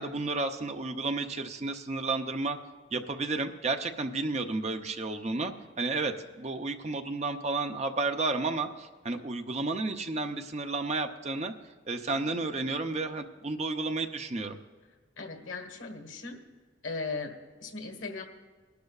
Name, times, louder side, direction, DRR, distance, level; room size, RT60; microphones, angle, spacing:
voice 1, 0.0-2.6 2.9-11.5 11.9-14.6, right 3 dB, 35° right, 6 dB, 0.6 m, -32 dB
voice 2, 15.2-16.4 16.8-18.2, left 3 dB, 80° left, 4 dB, 1.5 m, -38 dB
21.5 x 11.5 x 2.4 m, 1.4 s
head